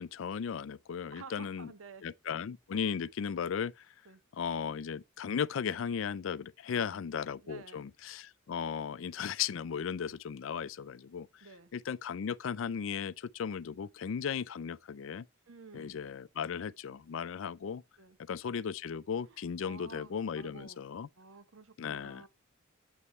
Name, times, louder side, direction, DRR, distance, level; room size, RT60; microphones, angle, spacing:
voice 1, 0.0-1.7 2.0-3.9 4.3-11.5 11.7-15.3 15.7-17.8 18.3-21.1 21.8-22.2, left 7 dB, 70° left, 0.4 m, -36 dB
voice 2, 1.1-2.0 4.1-4.2 6.7-7.0 7.4-7.9 11.4-11.7 15.5-16.0 18.0-18.2 19.3-20.8 21.2-22.3, right 4 dB, 85° right, 0.9 m, -52 dB
8.3 x 3.1 x 5.4 m
head